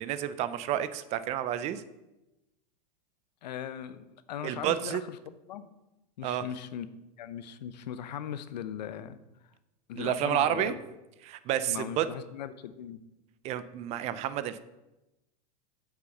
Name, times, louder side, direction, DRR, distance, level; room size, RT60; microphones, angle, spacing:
voice 1, 0.0-1.8 4.4-5.0 6.2-6.4 10.0-10.7 11.2-12.1 13.4-14.6, right 11 dB, 30° right, 14 dB, 0.5 m, -30 dB
voice 2, 3.4-5.2 5.5-5.7 6.2-6.9 7.2-9.2 9.9-10.8 11.6-13.0, left 9 dB, 85° left, 13 dB, 0.8 m, -39 dB
7.4 x 6.1 x 6.6 m, 0.98 s
supercardioid pair, 145°, 21 cm